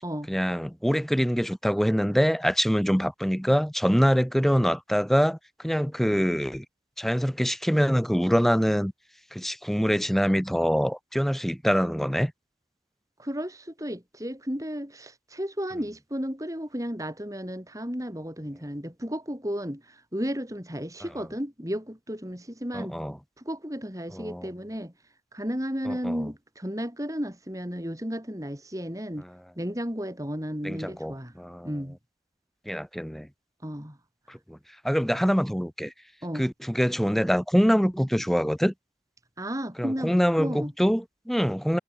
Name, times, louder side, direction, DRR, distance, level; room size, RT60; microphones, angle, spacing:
voice 1, 0.3-6.7 7.0-8.9 9.3-12.3 22.7-23.2 24.1-24.5 25.9-26.3 30.6-31.7 32.7-33.3 34.3-34.6 34.8-35.9 36.3-38.7 39.8-41.8, equal, ahead, 5.4 m, -24 dB
voice 2, 13.2-23.0 23.4-24.9 25.3-29.2 29.6-31.3 31.6-32.0 33.6-34.0 36.2-36.5 39.4-40.7, equal, 20° right, 6.8 m, -33 dB
head